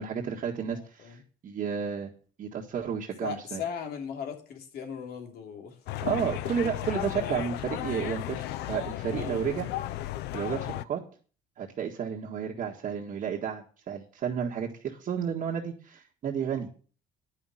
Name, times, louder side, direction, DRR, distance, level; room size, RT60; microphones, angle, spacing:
voice 1, 0.0-2.1 2.4-3.6 6.0-9.7 10.3-11.0 11.6-16.7, right 7 dB, 50° right, -2 dB, 1.7 m, -32 dB
voice 2, 0.7-1.2 3.2-5.8 6.7-6.8 7.1-7.4 9.1-9.5, left 6 dB, 70° left, 4 dB, 3.0 m, -38 dB
sound 1, 5.9-10.8, left 14 dB, 85° left, 0.5 m, -34 dB
10.5 x 5.8 x 7.7 m, 0.40 s
cardioid pair, 110°, 17 cm